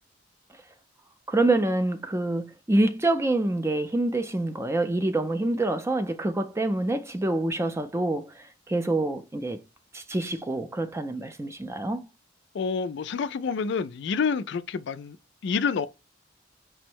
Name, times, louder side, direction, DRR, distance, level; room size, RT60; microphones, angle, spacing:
voice 1, 1.3-9.6 9.9-12.1, right 2 dB, 15° right, 0.4 m, -26 dB
voice 2, 12.5-15.2 15.4-15.9, left 5 dB, 60° left, 0.3 m, -28 dB
5.2 x 2.1 x 4.3 m
head